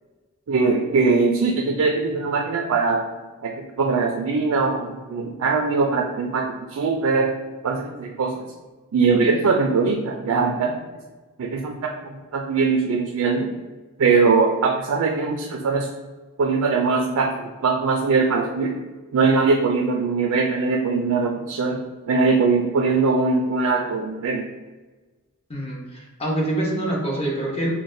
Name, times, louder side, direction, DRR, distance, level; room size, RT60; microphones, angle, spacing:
voice 1, 0.5-3.1 3.4-7.3 7.6-8.5 8.9-10.8 11.4-13.5 14.0-15.9 16.4-18.8 19.1-24.5, right 4 dB, 70° right, 1 dB, 0.4 m, -21 dB
voice 2, 25.5-27.7, right 1 dB, 25° left, -2 dB, 0.8 m, -25 dB
5.8 x 2.2 x 2.5 m, 1.3 s
head